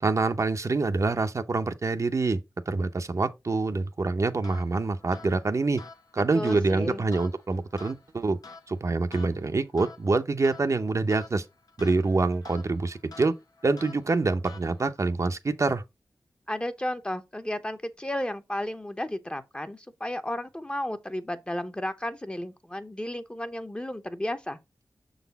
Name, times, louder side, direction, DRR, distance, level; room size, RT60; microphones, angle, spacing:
voice 1, 0.0-2.4 2.7-5.8 6.1-8.4 8.7-11.4 11.8-13.4 13.6-15.8, right 3 dB, 50° right, 0.6 m, -26 dB
sound 1, 4.4-15.1, left 3 dB, 75° left, 0.9 m, -50 dB
voice 2, 6.3-7.0 16.5-24.6, left 1 dB, 15° left, 0.8 m, -33 dB
6.5 x 4.0 x 4.0 m
wide cardioid pair, 65°, 7 cm